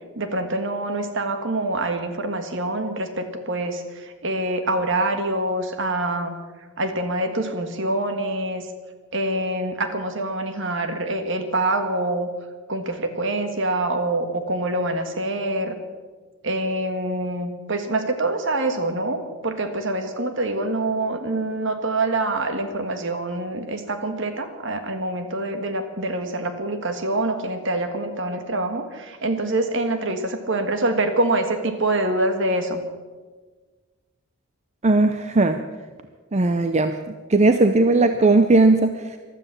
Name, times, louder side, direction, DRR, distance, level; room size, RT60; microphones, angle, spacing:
voice 1, 0.1-6.3 6.8-8.7 9.1-12.3 12.7-15.8 16.4-32.8, right 2 dB, 55° right, 7 dB, 1.6 m, -25 dB
voice 2, 34.8-35.6 36.3-39.2, right 2 dB, 30° right, 8 dB, 0.5 m, -18 dB
14.5 x 12.5 x 7.5 m, 1.4 s
head